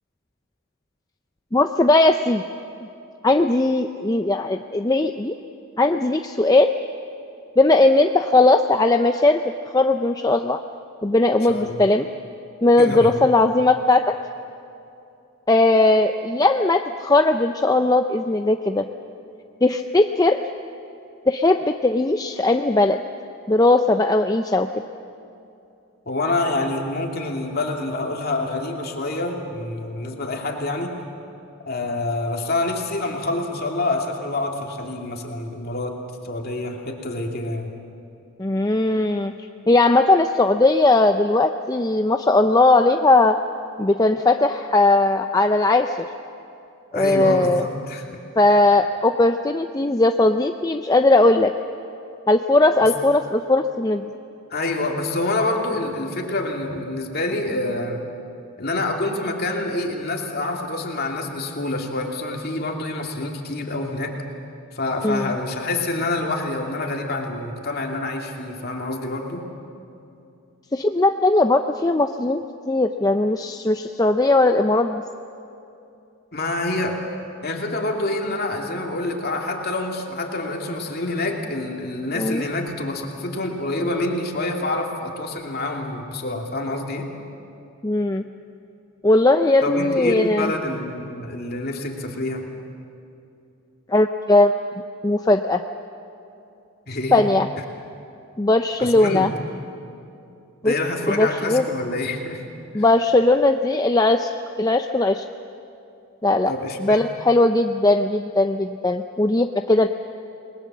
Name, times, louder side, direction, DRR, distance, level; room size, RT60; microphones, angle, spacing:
voice 1, 1.5-2.4 3.2-5.3 5.8-6.7 7.6-9.4 9.7-10.6 11.0-12.1 12.6-14.1 15.5-18.8 19.6-20.4 21.3-23.0 23.5-24.7 38.4-39.3 39.7-43.4 43.8-46.0 46.9-47.6 48.4-51.5 52.3-54.1 65.0-65.3 70.7-72.4 72.7-75.0 82.2-82.4 87.8-88.2 89.0-90.5 93.9-94.5 95.0-95.6 97.1-97.5 98.4-99.3 100.6-100.7 101.1-101.6 102.7-104.3 104.6-105.2 106.2-106.5 106.8-109.9, left 2 dB, 15° left, 6 dB, 0.5 m, -18 dB
voice 2, 11.5-11.9 12.8-13.1 26.1-31.0 31.7-36.0 36.2-37.7 46.9-48.2 52.8-52.9 54.5-58.0 58.6-64.2 64.7-69.5 76.3-77.0 77.4-87.1 89.6-92.5 96.9-97.2 98.8-99.3 100.6-102.4 102.7-102.8 106.5-107.0, left 2 dB, 45° left, 1 dB, 2.6 m, -27 dB
28.0 x 20.5 x 7.4 m, 2.7 s
head